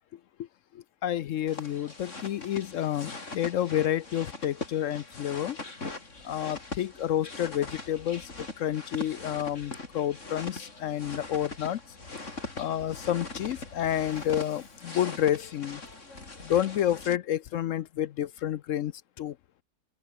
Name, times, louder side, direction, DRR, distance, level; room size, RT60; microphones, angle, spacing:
voice 1, 0.7-5.6 6.2-11.8 12.6-15.8 16.4-18.9 19.2-19.4, left 11 dB, 65° left, 0.8 m, -29 dB
sound 1, 1.5-17.2, left 3 dB, 45° left, 4.0 m, -41 dB
open air
omnidirectional pair, 1.7 m